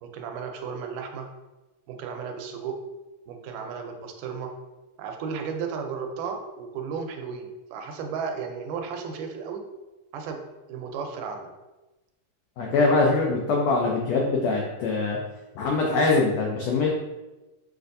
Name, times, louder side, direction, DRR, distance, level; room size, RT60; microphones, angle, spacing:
voice 1, 0.0-1.3 1.9-2.8 3.3-4.5 5.0-9.6 10.1-10.4 10.7-11.5 12.7-13.1, right 6 dB, 85° right, 4 dB, 2.1 m, -34 dB
voice 2, 12.6-15.2 15.5-16.9, left 3 dB, 90° left, -1 dB, 1.5 m, -23 dB
6.2 x 2.5 x 2.5 m, 1.1 s
omnidirectional pair, 3.6 m